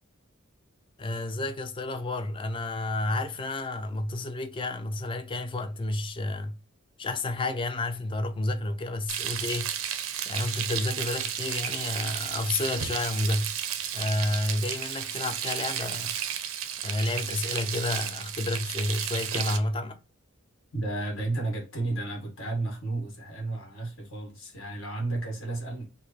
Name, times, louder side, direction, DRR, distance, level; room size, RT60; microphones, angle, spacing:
voice 1, 1.0-6.6 7.0-10.0 10.3-13.5 13.9-16.2 16.8-20.0, left 2 dB, 25° left, 0.3 m, -30 dB
Frying (food), 9.1-19.6, right 9 dB, 80° right, 0.5 m, -33 dB
voice 2, 20.7-25.8, right 2 dB, 70° left, 1.4 m, -32 dB
4.6 x 2.0 x 2.8 m
head